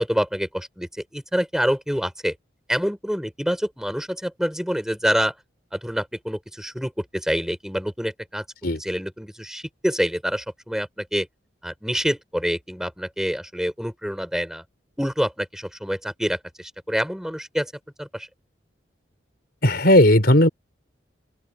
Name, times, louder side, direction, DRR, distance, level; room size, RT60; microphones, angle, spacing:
voice 1, 0.0-2.3 2.7-5.3 5.7-8.4 8.8-11.3 11.6-14.6 15.0-17.7 18.0-18.3, equal, 5° right, 3.9 m, -26 dB
voice 2, 19.6-20.5, left 1 dB, 55° left, 4.9 m, -15 dB
open air
head